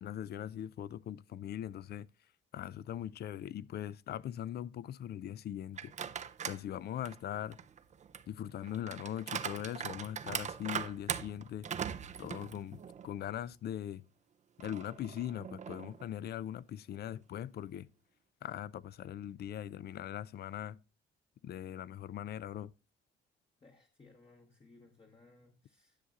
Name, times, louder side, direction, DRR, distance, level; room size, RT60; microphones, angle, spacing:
voice 1, 0.0-2.1 2.5-5.9 6.4-7.6 8.3-11.7 12.2-14.0 14.6-17.9 18.4-20.8 21.4-22.7, left 11 dB, 55° left, 0.4 m, -41 dB
sound 1, 5.7-6.6 7.1-13.1 13.5-13.6 14.6-16.1, right 7 dB, 35° right, 0.4 m, -41 dB
voice 2, 23.6-26.0, left 3 dB, 25° left, 1.0 m, -61 dB
9.9 x 6.5 x 2.4 m
cardioid pair, 90°, 20 cm